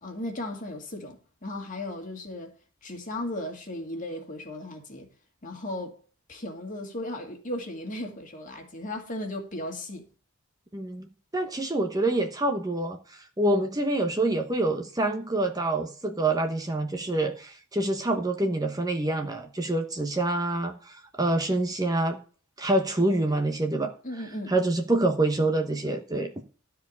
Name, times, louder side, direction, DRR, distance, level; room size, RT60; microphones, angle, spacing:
voice 1, 0.0-2.5 2.8-5.1 5.4-6.0 6.3-10.1 24.0-24.5, left 1 dB, 35° left, 2.4 m, -36 dB
voice 2, 10.7-11.1 11.3-22.2 22.6-23.9 24.5-26.3, right 2 dB, 15° right, 1.0 m, -26 dB
13.0 x 4.8 x 8.4 m
head